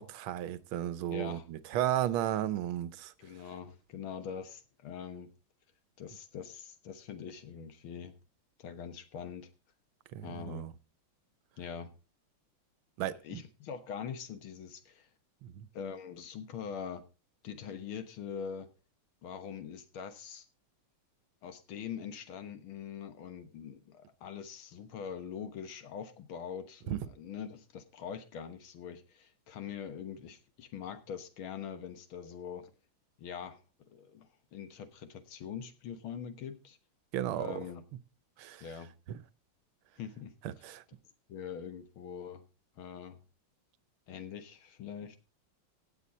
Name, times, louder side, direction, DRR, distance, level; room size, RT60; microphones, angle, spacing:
voice 1, 0.0-3.1 10.1-10.7 13.0-13.4 15.4-15.7 26.9-27.0 37.1-37.7 38.4-38.7 39.1-39.2 40.4-40.8, right 11 dB, 90° right, 1.6 m, -34 dB
voice 2, 1.1-1.5 3.2-5.3 6.0-8.1 8.6-9.5 10.2-10.7 11.6-11.9 13.2-15.1 15.7-17.1 17.4-18.7 19.2-20.4 21.4-32.7 33.2-33.6 33.9-36.8 37.3-37.9 38.6-38.9 40.0-40.3 41.3-42.4 42.8-43.2 44.1-45.2, left 7 dB, 90° left, 2.1 m, -43 dB
16.5 x 7.7 x 4.1 m
omnidirectional pair, 2.2 m